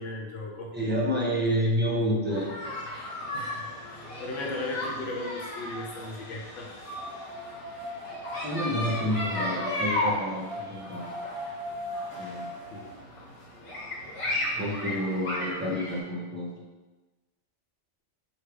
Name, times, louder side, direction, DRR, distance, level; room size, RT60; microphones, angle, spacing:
voice 1, 0.0-0.7 3.3-6.7 12.2-12.3 12.7-12.9 14.4-14.5, left 2 dB, 85° left, -1 dB, 1.2 m, -37 dB
voice 2, 0.7-2.5 8.4-11.0 12.1-12.5 14.6-16.5, equal, 15° right, -4 dB, 0.5 m, -29 dB
sound 1, 2.3-16.0, left 1 dB, 70° left, 1.4 m, -35 dB
sound 2, 3.7-5.6 6.8-12.9, equal, 25° left, 1.6 m, -41 dB
3.3 x 2.8 x 4.6 m, 1.2 s
omnidirectional pair, 1.2 m